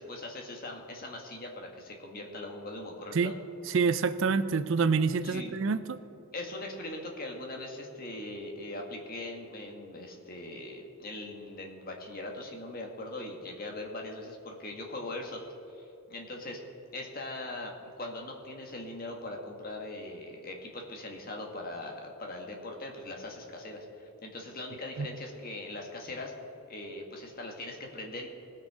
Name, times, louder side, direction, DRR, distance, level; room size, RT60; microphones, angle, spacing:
voice 1, 0.0-3.3 5.2-5.5 6.3-15.4 16.1-16.6 16.9-26.3 26.7-28.3, left 2 dB, 40° left, 1 dB, 1.6 m, -40 dB
voice 2, 3.7-6.0 25.0-25.1, right 5 dB, 60° right, 13 dB, 0.4 m, -27 dB
19.0 x 6.5 x 4.9 m, 2.9 s
head